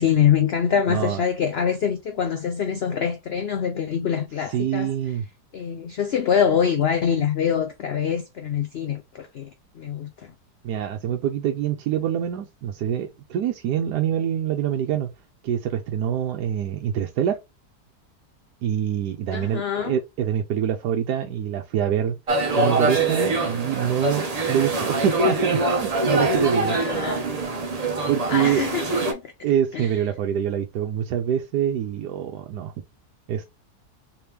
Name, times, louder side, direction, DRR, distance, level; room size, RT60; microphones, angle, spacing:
voice 1, 0.0-4.9 5.5-9.5 9.8-10.3 19.3-19.9 26.7-27.2 28.3-29.2 29.7-29.9, left 8 dB, 90° left, 0.5 m, -24 dB
voice 2, 0.9-1.2 4.5-5.2 10.6-15.1 15.4-17.4 18.6-22.2 22.5-26.8 28.1-28.6 29.4-32.7 33.3-33.5, right 9 dB, 80° right, 1.2 m, -25 dB
sound 1, 22.3-29.1, right 2 dB, 35° right, 0.6 m, -24 dB
3.4 x 3.4 x 2.8 m
omnidirectional pair, 1.8 m